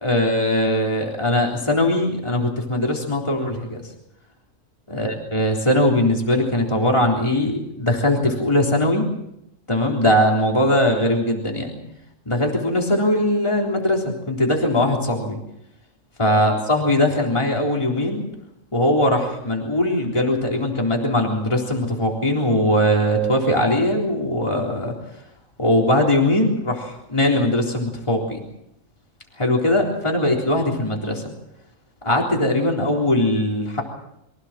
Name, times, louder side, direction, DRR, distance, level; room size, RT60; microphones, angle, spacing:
voice 1, 0.0-3.8 4.9-9.1 9.7-11.8 12.3-15.4 16.2-18.3 18.7-24.9 25.6-28.4 29.4-31.2 32.0-33.8, left 1 dB, 25° left, -1 dB, 3.8 m, -20 dB
25.0 x 16.0 x 7.5 m, 0.82 s
omnidirectional pair, 1.3 m